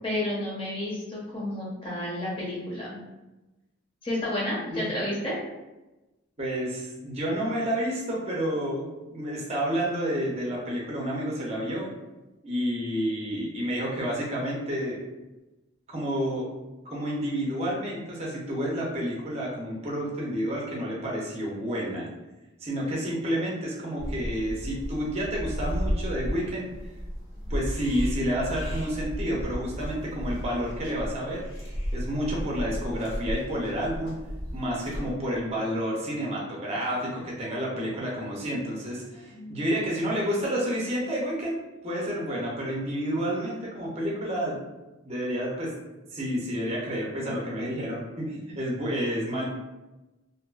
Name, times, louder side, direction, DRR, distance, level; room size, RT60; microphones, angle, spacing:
voice 1, 0.0-3.0 4.0-5.3 39.3-39.6 47.2-47.3, left 1 dB, 25° left, -6 dB, 0.6 m, -31 dB
voice 2, 6.4-11.9 12.4-15.0 15.9-16.5 16.8-22.1 22.6-26.7 27.5-31.4 31.9-34.1 34.5-41.6 41.8-44.6 45.0-45.7 46.1-49.4, equal, 30° right, -4 dB, 0.6 m, -30 dB
sound 1, 24.0-35.1, equal, 80° left, 0.8 m, -34 dB
2.6 x 2.3 x 2.3 m, 1.0 s
head